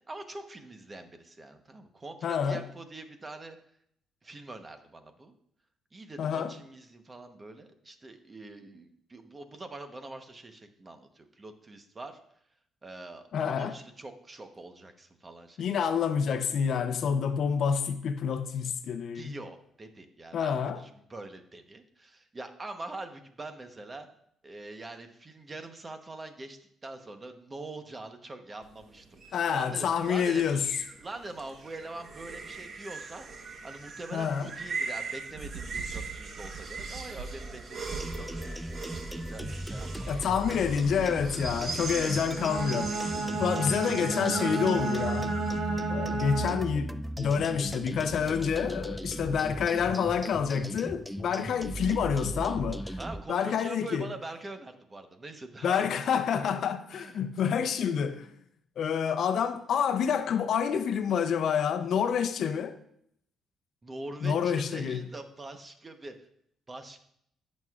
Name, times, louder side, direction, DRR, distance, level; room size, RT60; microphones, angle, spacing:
voice 1, 0.1-3.6 4.2-5.3 5.9-12.2 12.8-15.6 15.9-16.0 18.8-24.1 24.4-30.5 31.0-33.3 33.6-38.7 39.1-40.1 41.8-42.3 43.1-43.7 53.0-56.2 56.9-57.5 63.8-66.1 66.7-67.0, right 2 dB, 25° right, 1.0 m, -44 dB
voice 2, 2.2-2.7 6.2-6.5 13.3-13.8 15.6-19.4 20.3-20.8 29.3-30.7 34.1-34.5 40.1-43.0 43.4-45.4 45.9-53.0 53.3-54.1 55.6-58.3 58.8-62.8 64.2-65.1, left 7 dB, 65° left, 0.6 m, -28 dB
scary wind, 28.6-45.6, right 4 dB, 50° right, 1.1 m, -40 dB
sound 1, 37.9-53.2, equal, ahead, 0.4 m, -37 dB
Bowed string instrument, 42.3-46.8, right 3 dB, 75° right, 0.9 m, -32 dB
14.0 x 6.4 x 2.5 m
cardioid pair, 90°, 0 cm